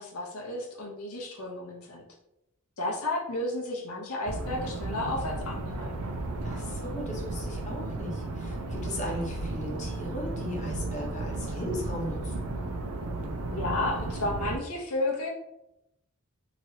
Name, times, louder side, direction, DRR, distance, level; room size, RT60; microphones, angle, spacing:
voice 1, 0.0-2.0 2.8-5.9 13.5-15.3, left 2 dB, 80° left, -1 dB, 0.8 m, -32 dB
sound 1, 4.3-14.6, right 2 dB, 85° right, 0.5 m, -34 dB
voice 2, 6.4-12.5, left 1 dB, 35° left, -2 dB, 0.8 m, -37 dB
3.0 x 2.9 x 2.7 m, 0.85 s
head